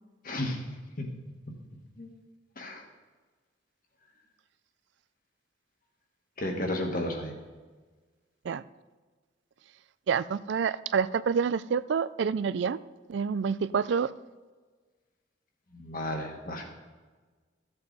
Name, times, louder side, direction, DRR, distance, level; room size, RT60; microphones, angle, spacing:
voice 1, 0.2-0.6 1.0-1.1 2.0-2.1 2.6-2.8 6.4-7.3 15.7-16.6, left 1 dB, 45° left, 2 dB, 1.7 m, -32 dB
voice 2, 10.1-12.8 13.1-14.1, right 6 dB, 65° right, 16 dB, 0.3 m, -27 dB
14.5 x 8.0 x 4.1 m, 1.4 s
head